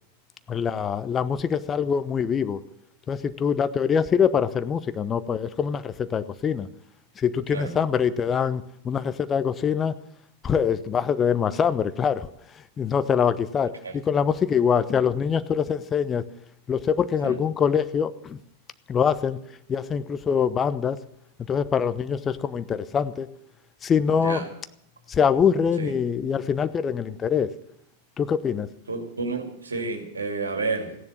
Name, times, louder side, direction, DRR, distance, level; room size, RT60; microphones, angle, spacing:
voice 1, 0.5-2.6 3.1-6.7 7.2-10.0 10.4-12.3 12.8-16.2 16.7-18.4 18.9-19.4 19.7-21.0 21.5-23.3 23.8-24.4 25.1-27.5 28.2-28.7, left 7 dB, 20° left, 13 dB, 0.7 m, -24 dB
voice 2, 24.2-24.5 25.8-26.0 28.9-31.0, right 3 dB, 75° right, 4 dB, 2.4 m, -30 dB
15.5 x 10.5 x 7.1 m, 0.73 s
figure-of-eight pair, 90°, 0 cm